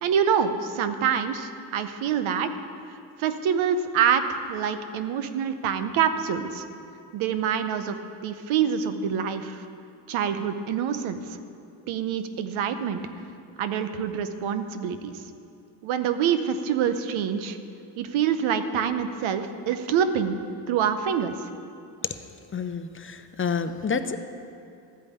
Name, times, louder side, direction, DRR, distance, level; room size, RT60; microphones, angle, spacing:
voice 1, 0.0-2.5 3.2-6.6 7.1-8.0 8.2-9.6 10.1-11.4 11.9-13.0 13.6-15.2 15.8-17.6 18.0-20.3 20.7-21.3, right 8 dB, 85° right, 9 dB, 0.9 m, -26 dB
voice 2, 22.5-24.2, left 5 dB, 25° left, 10 dB, 0.6 m, -29 dB
13.5 x 5.2 x 8.5 m, 2.6 s
cardioid pair, 80°, 46 cm